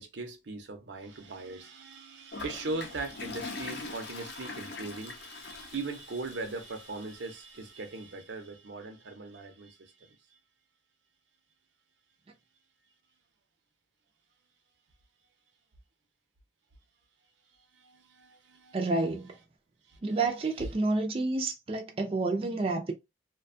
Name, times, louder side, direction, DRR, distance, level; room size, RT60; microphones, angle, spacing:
voice 1, 0.0-10.2 17.7-19.3 19.9-20.2 20.5-20.7, right 3 dB, 90° right, 0.7 m, -40 dB
Toilet flush, 2.3-7.4, left 4 dB, 65° left, 0.6 m, -43 dB
voice 2, 18.7-19.3 20.0-22.9, right 3 dB, 30° right, 0.4 m, -29 dB
2.5 x 2.2 x 2.5 m
head